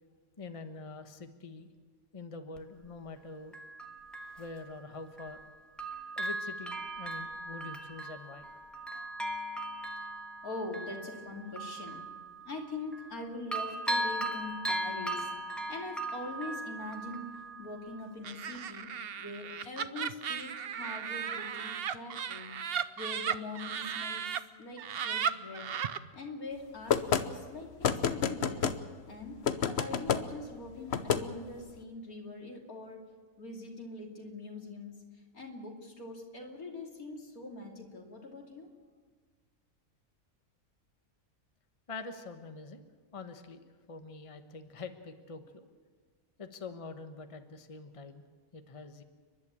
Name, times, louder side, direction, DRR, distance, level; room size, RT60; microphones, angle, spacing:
voice 1, 0.4-1.7 2.1-3.6 4.4-5.4 6.2-8.5 41.9-45.7 46.4-48.2 48.5-49.0, left 3 dB, 25° left, 7 dB, 1.2 m, -45 dB
Bell, 2.6-2.7 3.5-5.5 5.8-13.2 13.5-18.1 18.6-18.7, right 1 dB, ahead, 1.3 m, -38 dB
voice 2, 10.4-12.0 12.4-24.3 24.6-25.7 26.1-27.7 28.1-28.7 29.1-33.0 33.4-35.0 35.3-38.7, left 2 dB, 85° left, 1 dB, 3.3 m, -43 dB
Laughter, 18.2-24.4 24.8-26.0, right 8 dB, 50° right, 0.8 m, -35 dB
sound 1, 26.9-27.2 27.8-28.8 29.5-30.2 30.9-31.2, left 7 dB, 50° left, 1.1 m, -28 dB
30.0 x 11.5 x 8.7 m, 1.5 s
omnidirectional pair, 1.5 m